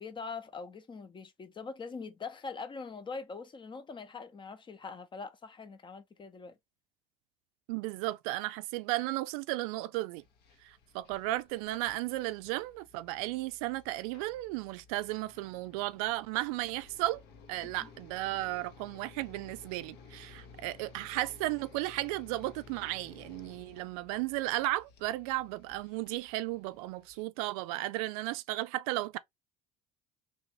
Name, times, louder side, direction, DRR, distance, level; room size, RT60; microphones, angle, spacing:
voice 1, 0.0-6.6 17.8-17.9, left 4 dB, 25° left, 0.7 m, -43 dB
voice 2, 7.7-10.2 10.6-17.2 17.5-29.2, right 17 dB, 70° right, 0.4 m, -34 dB
sound 1, 10.2-27.2, left 5 dB, 65° left, 0.9 m, -56 dB
3.4 x 2.6 x 2.9 m
hypercardioid pair, 75°, 19 cm